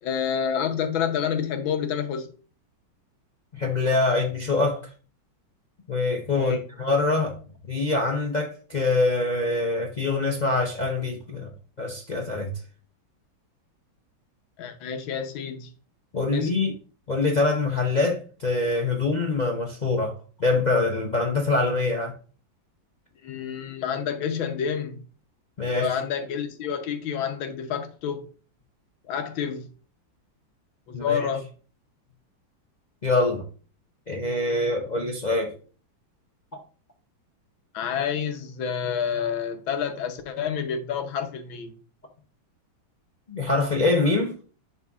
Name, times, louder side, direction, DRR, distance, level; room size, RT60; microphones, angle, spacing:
voice 1, 0.0-2.3 6.4-6.6 14.6-15.7 16.3-16.7 23.2-25.0 25.6-28.3 29.1-29.7 30.9-31.5 37.7-41.7, left 7 dB, 90° left, 1.7 m, -29 dB
voice 2, 3.5-4.9 5.9-7.4 7.7-11.5 11.8-12.5 16.1-16.7 17.1-22.2 25.6-25.9 30.9-31.3 33.0-33.4 34.1-35.5 43.3-44.3, left 3 dB, 60° left, 0.4 m, -24 dB
11.0 x 4.3 x 2.4 m
omnidirectional pair, 2.1 m